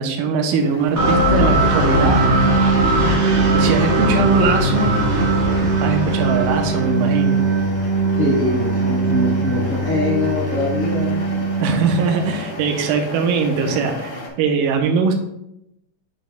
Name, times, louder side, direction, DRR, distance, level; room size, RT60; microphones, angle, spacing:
voice 1, 0.0-2.2 3.5-5.0 5.8-7.4 11.6-15.2, right 4 dB, 80° right, 4 dB, 2.3 m, -20 dB
sound 1, 0.6-14.3, left 1 dB, 50° left, 1.6 m, -36 dB
sound 2, 1.0-12.7, right 2 dB, 50° right, 2.1 m, -19 dB
voice 2, 8.2-11.3, left 2 dB, 20° left, -7 dB, 0.9 m, -22 dB
8.2 x 6.2 x 2.2 m, 0.81 s
omnidirectional pair, 3.9 m